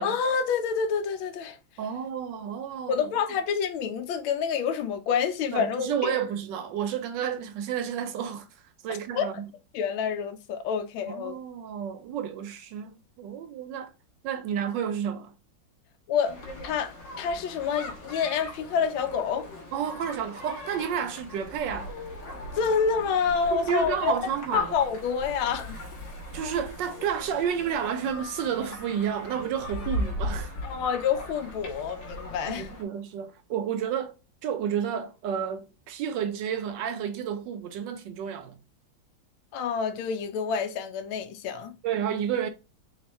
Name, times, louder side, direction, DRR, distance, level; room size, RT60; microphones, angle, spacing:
voice 1, 0.0-1.6 2.9-6.2 9.2-9.3 9.7-11.4 16.1-16.4 16.6-19.5 22.5-24.1 24.5-25.8 30.6-32.7 39.5-41.7, left 6 dB, 80° left, 1.5 m, -28 dB
voice 2, 1.8-3.0 5.5-8.5 8.8-9.5 11.1-13.9 14.2-15.3 19.7-21.9 23.5-24.7 26.3-30.6 32.5-34.1 34.4-38.6 41.8-42.5, right 8 dB, 75° right, 1.1 m, -31 dB
sound 1, 16.2-32.8, left 1 dB, 60° left, 2.0 m, -39 dB
4.4 x 2.4 x 4.2 m
omnidirectional pair, 2.2 m